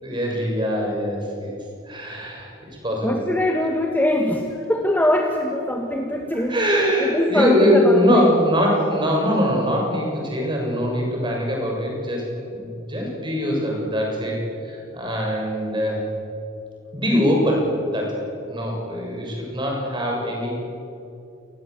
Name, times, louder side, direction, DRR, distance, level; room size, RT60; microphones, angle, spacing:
voice 1, 0.0-1.5 1.8-2.5 2.8-3.2 6.5-16.1 16.9-18.2 18.5-20.6, equal, 20° right, -1 dB, 6.8 m, -22 dB
voice 2, 3.0-6.6 7.0-8.3, left 1 dB, 10° left, 2 dB, 1.5 m, -22 dB
27.5 x 21.5 x 8.3 m, 2.7 s
head